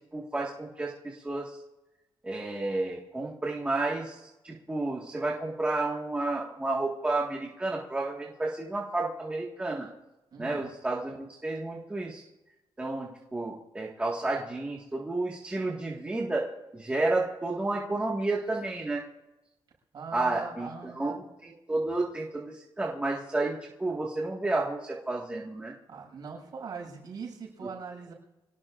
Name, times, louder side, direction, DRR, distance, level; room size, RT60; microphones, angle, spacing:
voice 1, 0.1-1.6 2.2-9.9 10.4-12.2 12.8-16.5 16.7-19.0 20.1-21.1 21.4-25.7, right 2 dB, 15° right, -3 dB, 1.8 m, -31 dB
voice 2, 10.3-10.6 19.9-21.2 25.9-28.1, right 5 dB, 50° right, -2 dB, 7.0 m, -41 dB
26.0 x 18.5 x 2.6 m, 1.0 s
cardioid pair, 145°, 9 cm